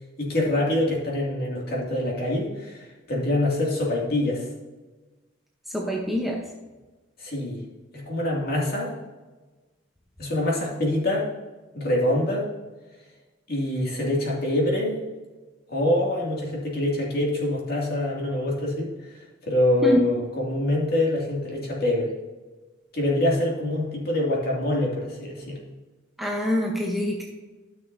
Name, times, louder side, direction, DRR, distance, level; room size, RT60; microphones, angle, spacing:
voice 1, 0.2-4.5 7.2-7.6 7.9-8.9 10.2-11.3 11.7-12.5 13.5-15.0 15.7-18.9 19.5-22.1 22.9-25.6, left 1 dB, 50° left, -3 dB, 2.5 m, -25 dB
voice 2, 5.7-6.4 19.8-20.0 26.2-27.2, equal, ahead, -2 dB, 0.9 m, -25 dB
13.5 x 6.3 x 2.7 m, 1.2 s
head